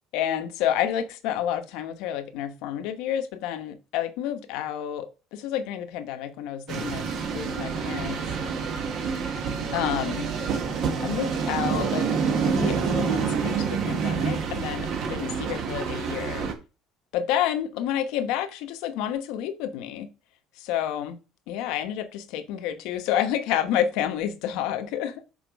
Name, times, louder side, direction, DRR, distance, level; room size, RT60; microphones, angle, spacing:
voice 1, 0.1-7.0 7.3-8.2 9.7-10.3 11.0-12.1 12.4-16.5 17.1-20.1 20.6-21.2 21.5-25.3, left 10 dB, 80° left, 1.0 m, -29 dB
sound 1, 6.7-16.5, right 6 dB, 45° right, 1.3 m, -27 dB
6.4 x 4.4 x 5.1 m
cardioid pair, 160°, 0 cm